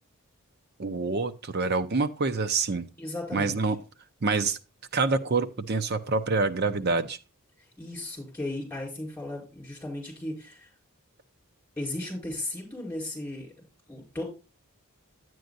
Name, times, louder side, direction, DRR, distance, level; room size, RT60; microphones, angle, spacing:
voice 1, 0.8-2.9 3.3-3.8 4.2-4.6 4.9-7.2, right 4 dB, 45° right, 0.6 m, -26 dB
voice 2, 3.0-3.6 7.6-10.7 11.8-13.5 13.9-14.2, left 1 dB, 10° left, 4.7 m, -36 dB
10.5 x 9.3 x 2.6 m
head